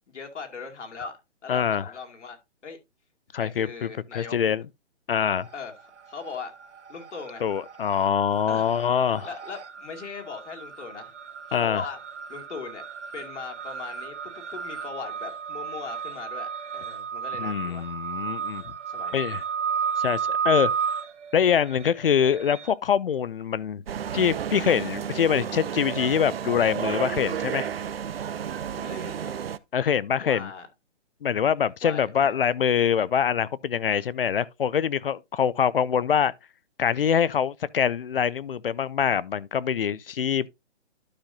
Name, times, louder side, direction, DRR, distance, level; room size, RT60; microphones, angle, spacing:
voice 1, 0.1-1.1 1.4-2.4 2.6-2.8 3.3-4.4 5.5-6.5 6.9-7.5 8.5-8.7 9.2-11.1 11.5-12.0 12.3-12.9 13.1-18.0 18.8-19.2 28.7-29.4 30.2-30.7 31.8-32.5, left 5 dB, 75° left, 2.6 m, -39 dB
voice 2, 1.5-1.9 3.3-4.6 5.1-5.5 7.4-9.3 11.5-11.8 17.4-18.7 19.1-19.4 20.0-20.7 21.3-23.8 24.1-27.7 29.7-30.5 31.2-36.3 36.8-40.5, left 8 dB, 50° left, 0.5 m, -24 dB
sound 1, 5.2-5.8 6.1-22.7, right 7 dB, 75° right, 1.0 m, -33 dB
sound 2, 23.9-29.6, right 8 dB, 55° right, 0.5 m, -32 dB
12.0 x 5.6 x 2.6 m
hypercardioid pair, 165°, 35 cm